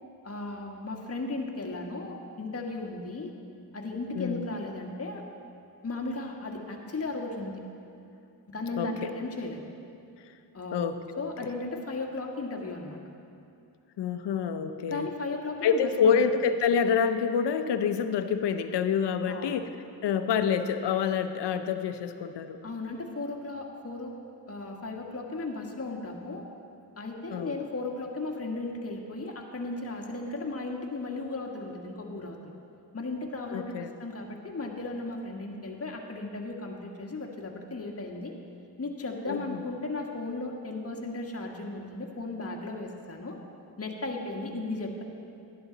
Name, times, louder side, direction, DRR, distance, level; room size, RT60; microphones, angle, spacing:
voice 1, 0.2-3.3 3.7-5.2 5.8-7.5 8.5-9.6 10.5-10.9 11.2-13.0 14.9-16.2 19.3-19.6 22.6-24.1 24.5-26.5 27.0-32.5 32.9-38.3 38.8-43.4 43.8-45.0, left 2 dB, 35° left, 0 dB, 1.6 m, -36 dB
voice 2, 4.2-4.5 8.8-9.1 10.2-10.3 10.7-11.0 11.2-11.3 14.0-15.1 15.6-19.7 20.0-22.6 27.3-27.5 33.5-33.9 39.3-39.7, left 7 dB, 80° left, 9 dB, 0.7 m, -27 dB
12.0 x 11.0 x 4.0 m, 2.6 s
cardioid pair, 60°, 41 cm